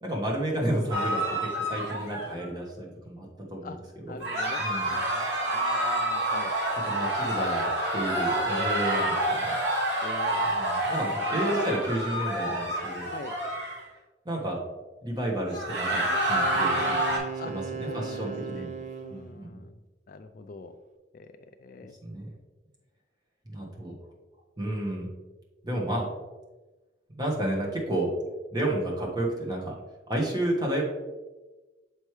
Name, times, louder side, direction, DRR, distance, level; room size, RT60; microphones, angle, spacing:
voice 1, 0.0-4.2 4.6-5.0 6.9-9.5 10.5-13.1 14.2-14.6 15.0-18.7 19.1-19.6 22.0-22.3 23.5-24.0 24.6-25.1 25.6-26.1 27.1-28.1 28.5-29.7 30.1-30.8, right 1 dB, 20° right, -2 dB, 1.2 m, -31 dB
sound 1, 0.9-2.5 4.2-13.8 15.5-17.2, right 1 dB, 70° right, 1.7 m, -28 dB
voice 2, 4.1-6.5 8.9-9.0 10.0-10.5 13.1-13.3 17.4-17.5 17.9-18.7 19.0-19.7 20.1-20.8 21.1-21.3 21.6-22.0, left 4 dB, 45° left, 9 dB, 0.3 m, -43 dB
Wind instrument woodwind instrument, 16.1-19.2, right 5 dB, 40° right, 0.4 m, -37 dB
6.5 x 4.5 x 3.2 m, 1.2 s
head